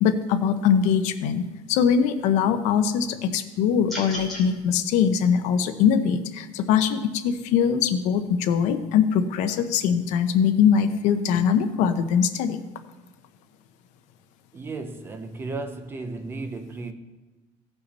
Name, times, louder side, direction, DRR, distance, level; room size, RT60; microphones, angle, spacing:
voice 1, 0.0-12.6, left 7 dB, 65° left, 0.8 m, -22 dB
sound 1, 3.9-4.4, left 1 dB, ahead, 3.0 m, -33 dB
voice 2, 14.5-16.9, right 3 dB, 15° right, 0.5 m, -34 dB
16.0 x 5.7 x 4.1 m
cardioid pair, 180°, 13 cm